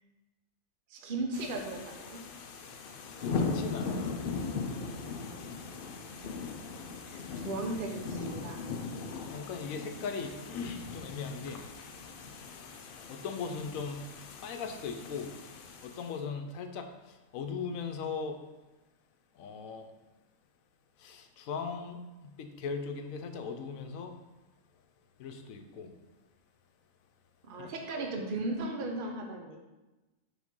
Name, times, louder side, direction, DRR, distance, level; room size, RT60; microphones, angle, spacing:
voice 1, 0.9-2.2 6.2-6.6 7.1-8.6 27.4-29.6, right 2 dB, 45° right, 2 dB, 0.8 m, -37 dB
sound 1, 1.3-16.1, left 4 dB, 60° left, 0.5 m, -39 dB
voice 2, 3.2-4.3 9.3-11.6 12.5-14.0 14.4-15.3 15.8-18.4 19.3-19.9 21.0-24.1 25.2-25.9 27.6-28.1, left 5 dB, 80° left, 6 dB, 1.0 m, -39 dB
5.0 x 3.7 x 5.3 m, 1.1 s
omnidirectional pair, 1.4 m